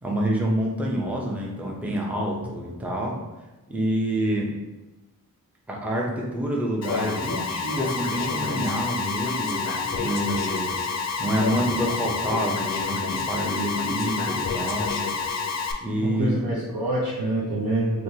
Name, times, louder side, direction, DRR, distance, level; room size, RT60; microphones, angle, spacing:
voice 1, 0.0-3.2 3.7-4.5 5.7-10.7 11.2-15.0 15.8-16.4, equal, 5° right, -2 dB, 0.5 m, -27 dB
Alarm, 6.8-15.7, left 5 dB, 50° left, 0.4 m, -28 dB
voice 2, 16.0-18.0, right 1 dB, 85° right, -6 dB, 0.7 m, -26 dB
4.5 x 2.2 x 2.7 m, 1.1 s
wide cardioid pair, 90°, 36 cm